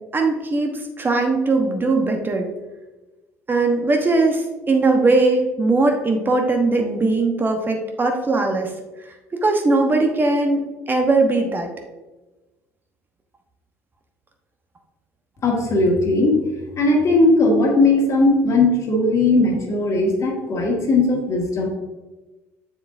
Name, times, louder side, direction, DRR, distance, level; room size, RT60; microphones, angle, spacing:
voice 1, 0.1-2.5 3.5-8.7 9.3-11.7, right 3 dB, 25° right, 3 dB, 1.1 m, -20 dB
voice 2, 15.4-16.4 16.8-21.7, left 2 dB, 45° left, 0 dB, 1.9 m, -18 dB
7.2 x 7.0 x 2.7 m, 1.2 s
hypercardioid pair, 60°, 7 cm